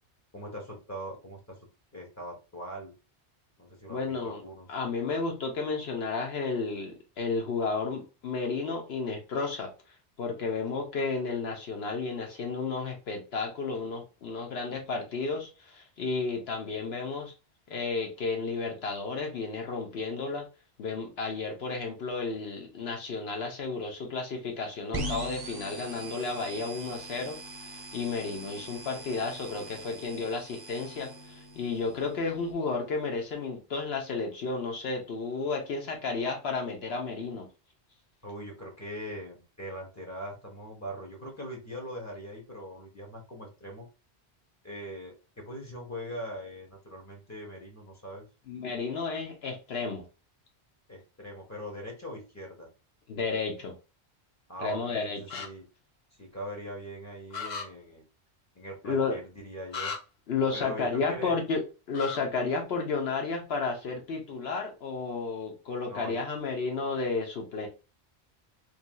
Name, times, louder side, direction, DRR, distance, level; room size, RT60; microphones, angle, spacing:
voice 1, 0.3-1.6 1.9-2.9 3.6-4.7 38.2-43.9 44.6-48.3 50.9-52.7 54.5-55.6 56.2-58.0 58.5-59.9 60.5-61.4 65.8-66.3, equal, 15° left, 0 dB, 0.9 m, -41 dB
voice 2, 3.9-4.4 4.7-9.7 10.2-17.3 17.7-20.5 20.8-27.4 27.7-37.5 48.5-50.0 53.1-53.7 54.6-55.2 58.8-59.2 60.3-61.6 61.9-67.7, left 4 dB, 70° left, 2 dB, 1.0 m, -32 dB
sound 1, 24.9-32.5, right 1 dB, 30° right, 0.5 m, -41 dB
sound 2, 55.3-55.5 57.3-57.7 59.7-60.0 61.9-62.2, left 5 dB, 50° left, 0.6 m, -35 dB
3.2 x 2.7 x 2.2 m, 0.31 s
omnidirectional pair, 1.1 m